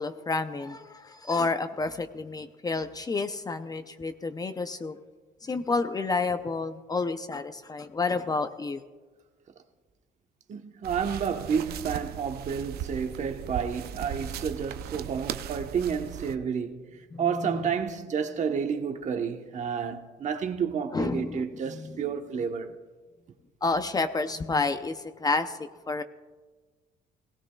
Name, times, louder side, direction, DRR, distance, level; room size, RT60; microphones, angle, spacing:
voice 1, 0.0-5.0 5.4-8.8 17.1-17.7 20.9-22.0 23.6-26.0, left 3 dB, 20° left, 0.6 m, -30 dB
voice 2, 10.5-16.9 17.2-22.7, right 7 dB, 45° right, 1.0 m, -30 dB
sound 1, 10.8-16.4, right 9 dB, 65° right, 0.6 m, -38 dB
17.5 x 17.0 x 2.3 m
cardioid pair, 110°, 17 cm